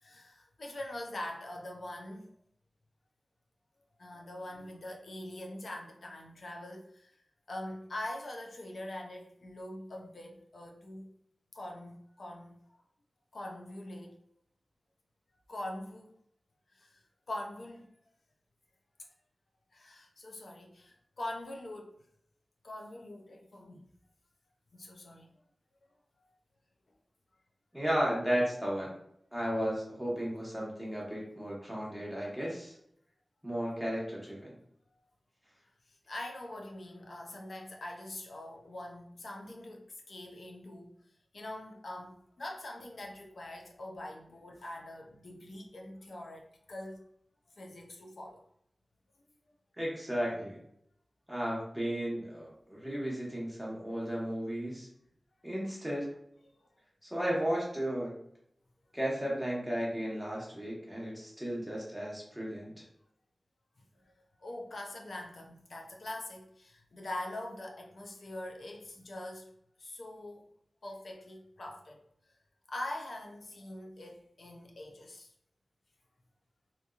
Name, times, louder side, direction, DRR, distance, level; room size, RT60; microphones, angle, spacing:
voice 1, 0.0-2.3 4.0-7.1 7.5-11.1 11.5-12.6 13.3-14.2 15.5-16.1 16.7-17.0 17.3-17.9 19.0-19.1 19.7-21.9 22.6-23.9 24.7-25.3 35.9-40.9 41.3-47.0 47.6-48.4 50.3-50.4 64.0-64.1 64.4-69.5 69.8-70.5 70.8-72.0 72.7-75.3, left 1 dB, 70° left, 1 dB, 0.5 m, -43 dB
voice 2, 27.7-28.9 29.3-32.7 33.4-34.5 49.8-50.6 51.3-54.9 55.4-56.1 57.0-58.1 58.9-62.7, equal, 5° right, -5 dB, 1.1 m, -34 dB
2.9 x 2.6 x 2.3 m, 0.71 s
wide cardioid pair, 80°, 0 cm